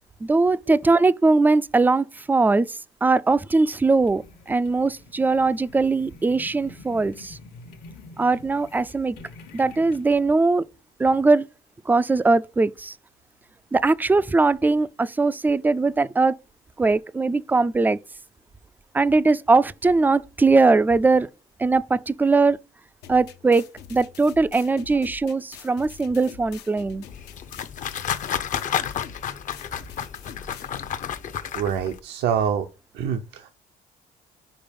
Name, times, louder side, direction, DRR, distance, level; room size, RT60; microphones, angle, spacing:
voice 1, 0.2-2.7 3.0-4.2 4.5-7.4 8.2-9.2 9.5-10.6 11.0-11.4 11.9-12.9 13.7-16.4 16.8-18.0 18.9-21.3 21.6-22.6 23.1-23.6 23.9-27.0, right 3 dB, 10° right, 0.3 m, -20 dB
sound 1, 4.0-10.2, left 3 dB, 70° left, 1.1 m, -46 dB
sound 2, 23.0-31.0, left 8 dB, 85° left, 0.9 m, -44 dB
sound 3, 27.1-32.0, left 9 dB, 50° left, 0.6 m, -31 dB
voice 2, 31.5-32.7 32.9-33.5, right 8 dB, 80° right, 0.7 m, -25 dB
5.2 x 4.7 x 5.2 m
cardioid pair, 110°, 17 cm